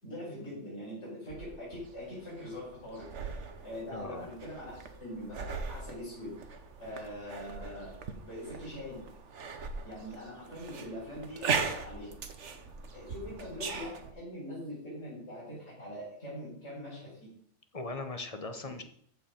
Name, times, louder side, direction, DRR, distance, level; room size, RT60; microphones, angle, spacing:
voice 1, 0.0-3.1 3.6-6.3 6.8-7.9 8.2-9.1 9.8-12.1 12.9-17.3 18.6-18.8, left 1 dB, 55° left, -8 dB, 5.6 m, -43 dB
sound 1, 1.3-14.1, right 5 dB, 60° right, 1.3 m, -40 dB
voice 2, 3.9-4.3 17.7-18.8, left 3 dB, 30° left, 7 dB, 1.0 m, -39 dB
14.5 x 5.4 x 5.1 m, 0.65 s
omnidirectional pair, 1.4 m